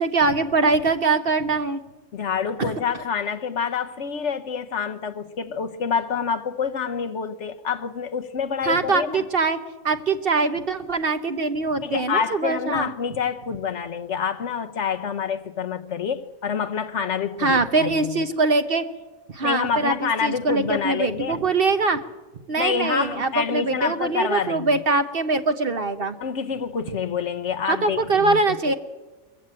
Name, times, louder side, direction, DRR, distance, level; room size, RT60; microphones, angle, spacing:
voice 1, 0.0-1.8 2.6-2.8 8.6-9.6 9.8-12.9 17.4-18.8 19.3-22.0 22.5-26.2 27.7-28.7, right 3 dB, 45° right, 1.1 m, -23 dB
voice 2, 2.1-9.2 11.8-18.2 19.4-21.4 22.6-24.8 26.2-28.7, left 6 dB, 60° left, 1.1 m, -27 dB
22.0 x 15.0 x 8.8 m
omnidirectional pair, 1.5 m